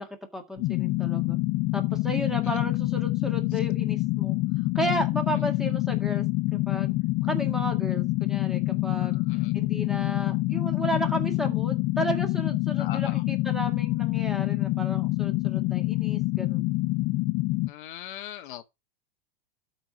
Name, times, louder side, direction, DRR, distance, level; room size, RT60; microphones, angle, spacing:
voice 1, 0.0-1.4 1.7-4.4 4.8-6.3 6.5-6.9 7.2-9.2 9.5-16.7, equal, ahead, 1.8 m, -33 dB
sound 1, 0.6-17.7, left 20 dB, 30° left, 0.5 m, -26 dB
voice 2, 9.0-9.5 12.8-13.2 17.7-18.6, left 12 dB, 60° left, 1.0 m, -40 dB
13.0 x 4.6 x 5.2 m
supercardioid pair, 145°, 29 cm